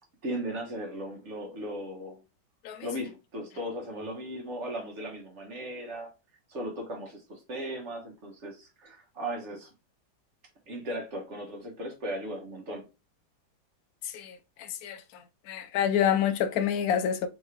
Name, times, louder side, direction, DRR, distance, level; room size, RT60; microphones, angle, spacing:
voice 1, 0.2-2.2 2.8-6.1 6.5-9.7 10.7-12.8, equal, 45° right, 1.2 m, -37 dB
voice 2, 14.0-15.2 15.5-17.3, left 9 dB, 80° left, 0.8 m, -28 dB
3.8 x 3.6 x 3.2 m
omnidirectional pair, 2.1 m